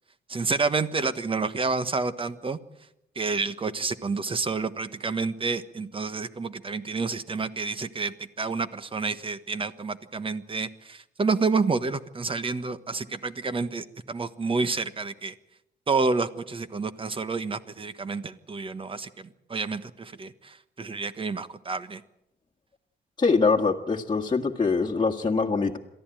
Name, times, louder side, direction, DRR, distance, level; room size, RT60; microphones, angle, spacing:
voice 1, 0.3-2.6 3.1-15.3 15.9-22.0, right 4 dB, 30° right, 12 dB, 1.3 m, -29 dB
voice 2, 23.2-25.8, left 4 dB, 25° left, -1 dB, 1.7 m, -23 dB
23.0 x 14.5 x 9.1 m, 0.85 s
cardioid pair, 105°, 18 cm